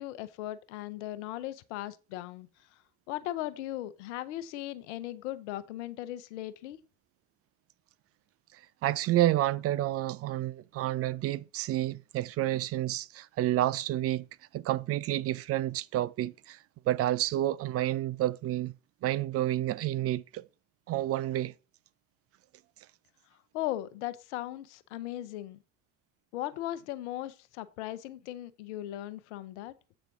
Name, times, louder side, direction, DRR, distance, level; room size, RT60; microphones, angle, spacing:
voice 1, 0.0-2.5 3.1-6.8 23.5-25.6 26.3-29.7, left 14 dB, 75° left, 0.8 m, -38 dB
voice 2, 8.5-14.3 14.5-18.7 19.0-20.5 20.9-21.5, right 14 dB, 45° right, 0.4 m, -30 dB
7.9 x 4.2 x 5.9 m
hypercardioid pair, 60°, 35 cm